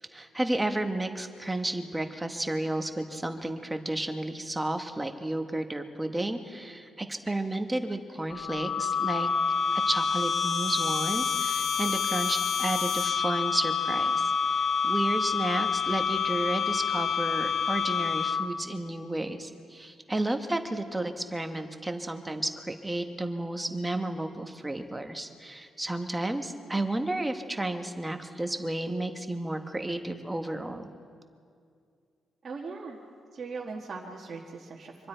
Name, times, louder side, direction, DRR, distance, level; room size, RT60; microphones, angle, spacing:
voice 1, 0.1-9.3 9.7-30.9, right 1 dB, 10° right, 6 dB, 1.1 m, -32 dB
sound 1, 8.3-18.7, left 6 dB, 45° left, 0.7 m, -28 dB
voice 2, 32.4-33.0 33.3-35.1, right 4 dB, 35° right, -3 dB, 1.6 m, -39 dB
25.5 x 24.5 x 4.5 m, 2.3 s
cardioid pair, 165°, 0 cm